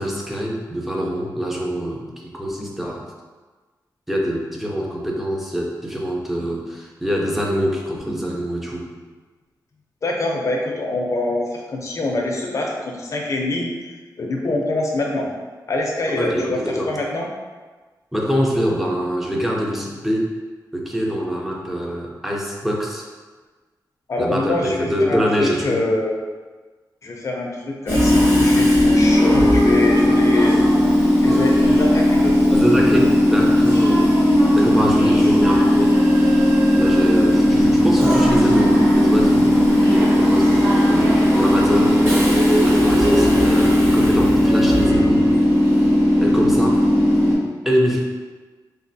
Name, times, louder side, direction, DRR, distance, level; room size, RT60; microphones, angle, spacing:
voice 1, 0.0-3.0 4.1-8.9 16.2-16.9 18.1-20.3 20.7-23.0 24.2-25.8 32.5-34.2 34.5-36.0 36.7-42.3 42.6-45.3 46.2-46.8 47.7-48.0, equal, 5° right, -2 dB, 0.5 m, -24 dB
voice 2, 10.0-13.7 14.2-15.3 15.7-17.3 24.1-26.1 27.0-30.6 31.2-32.6, left 2 dB, 45° left, -1 dB, 0.5 m, -24 dB
Train / Subway metro underground, 27.9-47.3, left 1 dB, 30° right, 0.9 m, -16 dB
sound 1, 28.6-40.0, right 3 dB, 75° right, 0.6 m, -32 dB
3.2 x 2.3 x 2.6 m, 1.3 s
wide cardioid pair, 130°, 7 cm